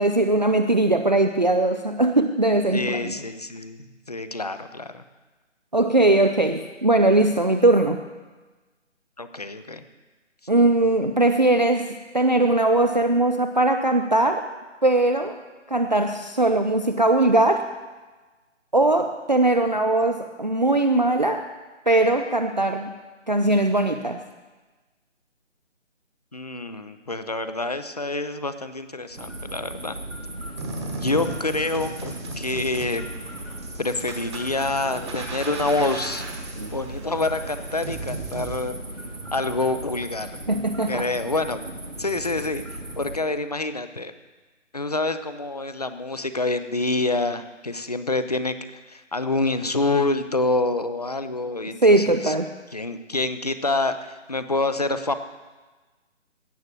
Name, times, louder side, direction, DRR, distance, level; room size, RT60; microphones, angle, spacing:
voice 1, 0.0-3.1 5.7-8.0 10.5-11.9 12.1-14.5 14.8-15.4 15.7-17.7 18.7-21.5 21.9-22.9 23.3-24.2 36.6-36.7 40.5-41.1 51.8-52.5, right 2 dB, 40° right, 7 dB, 0.5 m, -20 dB
voice 2, 2.7-5.0 9.2-9.8 26.3-30.0 30.5-30.6 30.9-33.0 33.8-36.3 36.7-38.8 39.3-40.6 40.9-41.6 42.0-42.6 43.0-44.1 44.7-52.3 52.7-55.2, left 2 dB, 35° left, 11 dB, 0.6 m, -27 dB
sound 1, 29.1-43.2, right 1 dB, 85° right, 2.1 m, -37 dB
sound 2, 30.6-38.6, right 2 dB, 20° right, 1.3 m, -36 dB
16.5 x 6.5 x 7.3 m, 1.3 s
figure-of-eight pair, 150°, 37 cm